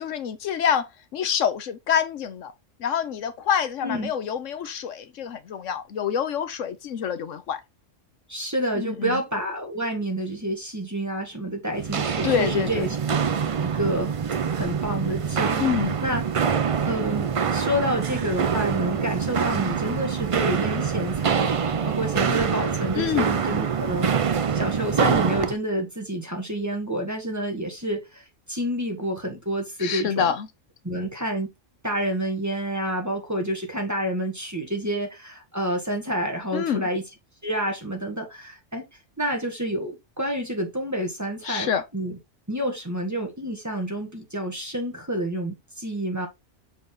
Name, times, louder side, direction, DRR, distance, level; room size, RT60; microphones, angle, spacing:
voice 1, 0.0-2.5 2.8-7.6 8.8-9.2 12.2-12.8 15.6-16.0 22.9-23.3 29.8-30.5 36.5-36.9 41.4-41.8, left 8 dB, 80° left, 1.2 m, -26 dB
voice 2, 8.3-13.2 13.6-14.1 14.5-15.7 16.0-16.2 16.9-24.1 24.5-30.3 30.8-31.5 31.8-37.0 37.4-38.8 39.2-42.1 42.5-46.3, right 1 dB, 15° right, 1.8 m, -29 dB
Walk footsteps, 11.7-25.6, right 6 dB, 55° right, 0.3 m, -25 dB
6.9 x 4.0 x 3.8 m
omnidirectional pair, 1.3 m